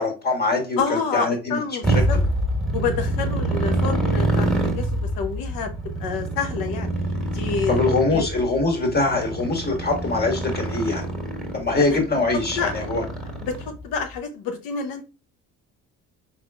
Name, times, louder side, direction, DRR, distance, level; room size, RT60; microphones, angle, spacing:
voice 1, 0.0-1.6 7.7-11.1 11.5-13.0, left 3 dB, 30° left, 2 dB, 1.5 m, -23 dB
voice 2, 0.8-2.2 2.7-4.9 5.2-5.7 6.0-6.9 7.3-8.3 11.9-12.0 12.6-12.7 13.4-15.0, left 5 dB, 85° left, 6 dB, 0.7 m, -28 dB
Motorcycle, 1.8-13.9, right 1 dB, ahead, 1.4 m, -26 dB
4.6 x 3.5 x 2.3 m, 0.32 s
cardioid pair, 95°, 34 cm